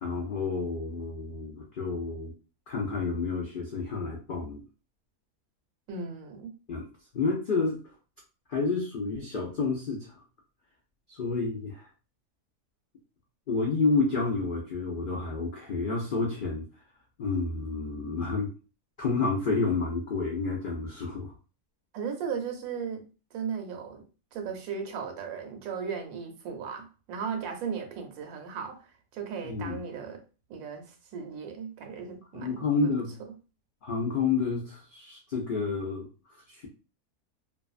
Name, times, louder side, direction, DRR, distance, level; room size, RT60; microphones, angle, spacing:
voice 1, 0.0-2.3 2.7-4.6 6.7-6.9 7.1-7.8 8.5-10.2 11.1-11.9 13.5-16.7 17.2-18.5 19.0-21.3 29.4-29.8 32.3-33.1 33.8-36.7, left 4 dB, 80° left, 0.4 m, -30 dB
voice 2, 5.9-6.5 21.9-23.0 23.3-24.0 24.3-30.2 30.5-33.0, right 6 dB, 75° right, 1.1 m, -36 dB
2.6 x 2.3 x 2.4 m
omnidirectional pair, 1.6 m